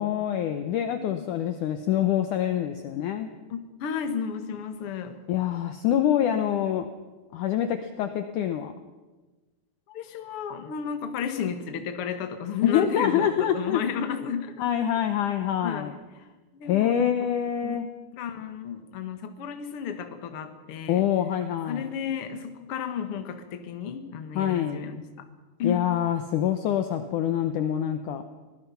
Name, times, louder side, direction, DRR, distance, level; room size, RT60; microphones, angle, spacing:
voice 1, 0.0-3.3 5.3-6.9 7.3-8.7 12.6-13.8 14.6-15.9 16.7-17.9 20.9-21.9 24.4-24.8 25.6-28.2, left 10 dB, 75° left, 8 dB, 2.0 m, -25 dB
voice 2, 3.5-5.2 9.9-14.5 15.6-16.2 16.5-17.2 17.6-17.8 18.1-21.1 21.7-25.3 25.6-25.9, left 7 dB, 50° left, 7 dB, 1.8 m, -33 dB
24.5 x 18.5 x 5.8 m, 1.2 s
omnidirectional pair, 4.5 m